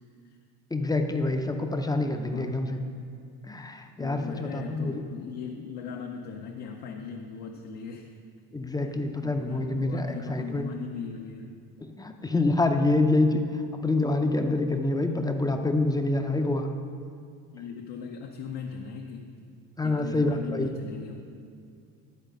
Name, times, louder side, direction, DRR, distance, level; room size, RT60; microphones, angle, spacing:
voice 1, 0.7-2.8 3.5-5.0 8.5-10.7 11.8-13.4 13.8-16.7 19.8-20.7, left 2 dB, 10° left, 5 dB, 0.5 m, -26 dB
voice 2, 2.2-2.6 4.0-8.2 8.8-11.5 17.5-19.4 19.8-21.2, left 6 dB, 75° left, 1 dB, 0.7 m, -39 dB
10.5 x 4.1 x 5.2 m, 2.4 s
supercardioid pair, 90°, 39 cm